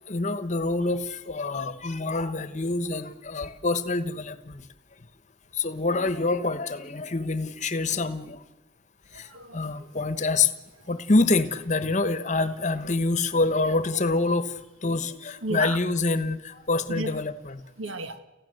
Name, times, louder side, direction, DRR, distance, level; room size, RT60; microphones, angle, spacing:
voice 1, 0.1-4.5 5.6-8.4 9.5-10.5 10.9-14.4 14.8-16.4 16.7-17.6, left 3 dB, 35° left, 1.1 m, -26 dB
voice 2, 9.1-9.8 15.4-15.8 16.9-17.1 17.8-18.2, right 2 dB, 75° right, 1.7 m, -33 dB
29.5 x 15.5 x 7.8 m
head